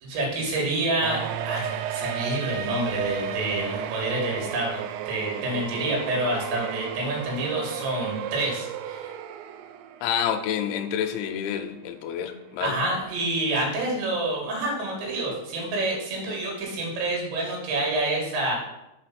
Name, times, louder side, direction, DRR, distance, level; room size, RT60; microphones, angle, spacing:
voice 1, 0.0-9.1 12.6-18.6, right 2 dB, 70° right, -1 dB, 4.0 m, -28 dB
sound 1, 1.0-10.3 10.6-10.7 11.6-11.7 12.1-12.2, right 9 dB, 85° right, 2.6 m, -33 dB
voice 2, 10.0-12.8, left 8 dB, 85° left, 6 dB, 2.9 m, -28 dB
6.8 x 4.9 x 5.9 m, 0.91 s
omnidirectional pair, 5.6 m